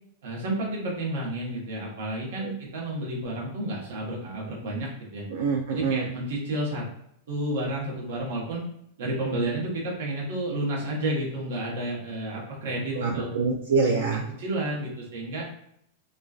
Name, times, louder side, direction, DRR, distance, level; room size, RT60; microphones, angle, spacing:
voice 1, 0.2-5.2 5.7-6.9 7.3-8.6 9.0-13.3 13.8-15.5, right 1 dB, 65° right, -3 dB, 0.9 m, -31 dB
voice 2, 5.3-6.1 12.9-14.2, right 4 dB, 85° right, 0 dB, 0.3 m, -25 dB
2.4 x 2.2 x 2.3 m, 0.73 s
supercardioid pair, 175°, 0 cm